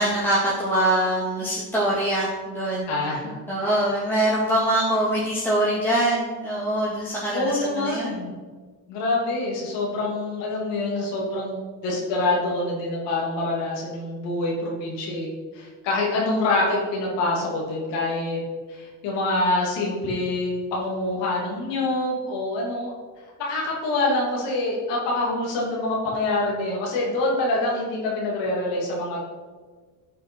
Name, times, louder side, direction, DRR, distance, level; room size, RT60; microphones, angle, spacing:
voice 1, 0.0-2.9 3.5-8.2, right 1 dB, 5° left, -7 dB, 2.2 m, -23 dB
voice 2, 2.9-3.8 7.3-8.3 8.9-18.4 18.7-22.9 23.4-29.2, left 2 dB, 85° left, -3 dB, 2.7 m, -26 dB
11.0 x 5.7 x 4.5 m, 1.4 s
cardioid pair, 95°, 41 cm